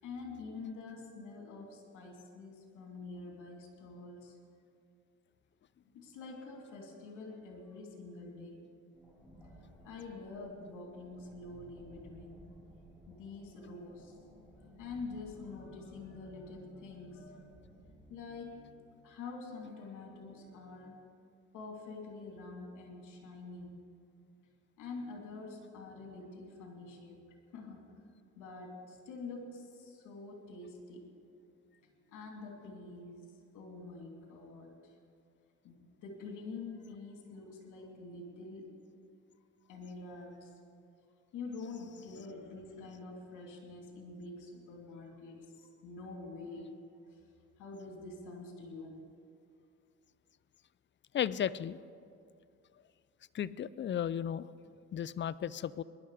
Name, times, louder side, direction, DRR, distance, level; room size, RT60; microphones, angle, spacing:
voice 1, 0.0-4.4 5.8-8.6 9.4-9.6 9.8-12.5 13.1-14.2 14.8-17.6 18.1-18.6 19.0-21.0 21.5-23.8 24.8-27.2 27.5-27.9 28.4-31.1 31.8-34.9 35.6-38.7 39.7-40.5 41.3-46.7 47.1-47.2 47.6-49.0, left 3 dB, 85° left, 1 dB, 2.9 m, -46 dB
sound 1, 8.9-20.0, equal, ahead, 4.6 m, -58 dB
voice 2, 51.1-51.8 53.3-54.5 54.9-55.8, left 9 dB, 40° left, 18 dB, 0.4 m, -34 dB
19.5 x 11.5 x 4.9 m, 2.4 s
cardioid pair, 90°, 30 cm